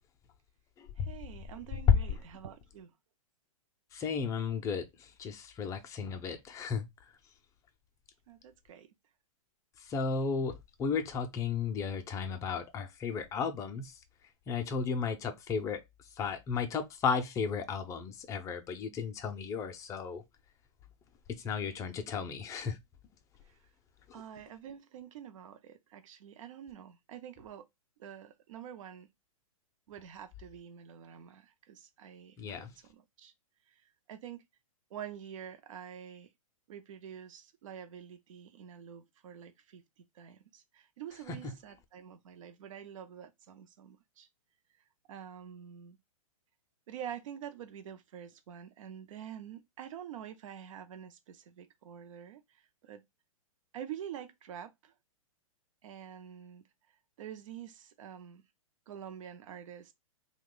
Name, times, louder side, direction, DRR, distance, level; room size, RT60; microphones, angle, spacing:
voice 1, 1.0-2.9 8.3-8.9 23.5-23.6 24.1-27.7 28.0-29.1 29.9-33.3 33.7-34.4 34.9-36.3 36.7-44.3 45.1-46.0 46.9-53.0 53.7-54.9 55.8-56.6 57.2-58.4 58.9-59.9, right 9 dB, 65° right, 0.6 m, -47 dB
voice 2, 3.9-6.9 9.8-13.9 14.5-15.8 16.2-20.2 21.3-22.8 24.1-24.2 32.4-32.7 41.3-41.5, left 5 dB, 15° left, 0.5 m, -34 dB
2.9 x 2.2 x 3.7 m
hypercardioid pair, 130°, 18 cm